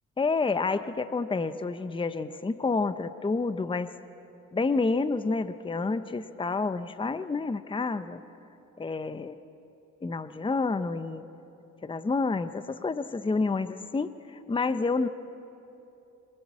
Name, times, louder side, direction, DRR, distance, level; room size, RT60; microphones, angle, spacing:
voice 1, 0.2-3.9 4.5-8.2 8.8-9.4 10.0-11.2 11.8-15.1, left 3 dB, 15° left, 12 dB, 0.8 m, -29 dB
25.5 x 23.5 x 7.4 m, 2.9 s
cardioid pair, 90°, 30 cm